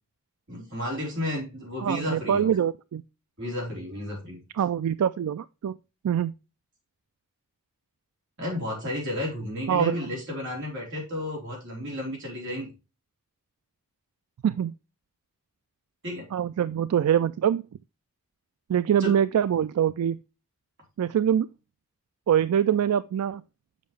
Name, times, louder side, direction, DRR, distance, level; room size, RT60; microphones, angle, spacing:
voice 1, 0.5-2.6 3.4-4.4 8.4-12.7 16.0-16.3 19.0-19.2, left 1 dB, 55° right, 3.8 m, -32 dB
voice 2, 1.8-3.0 4.5-5.8 6.0-6.3 9.7-10.0 14.4-14.7 16.3-17.6 18.7-20.2 21.0-21.5 22.3-23.4, right 9 dB, 80° right, 0.3 m, -24 dB
7.4 x 5.7 x 3.3 m
head